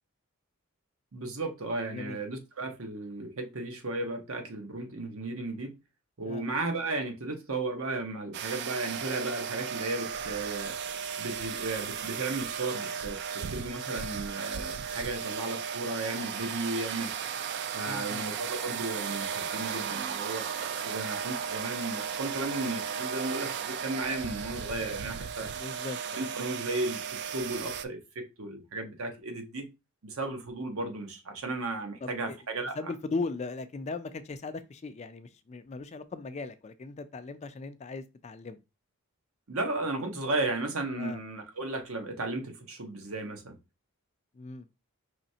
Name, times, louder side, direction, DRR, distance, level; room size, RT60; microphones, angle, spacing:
voice 1, 1.1-5.7 6.2-10.8 11.2-17.1 17.7-20.5 20.8-25.5 26.2-29.7 30.0-32.8 39.5-43.6, right 2 dB, 70° right, 0.9 m, -35 dB
voice 2, 6.2-6.6 17.9-18.3 25.5-26.3 32.0-32.4 32.8-38.6 41.0-41.2 44.4-44.6, left 3 dB, 30° left, 0.3 m, -38 dB
sound 1, 8.3-27.9, right 7 dB, 50° right, 0.3 m, -35 dB
5.0 x 3.1 x 2.7 m
head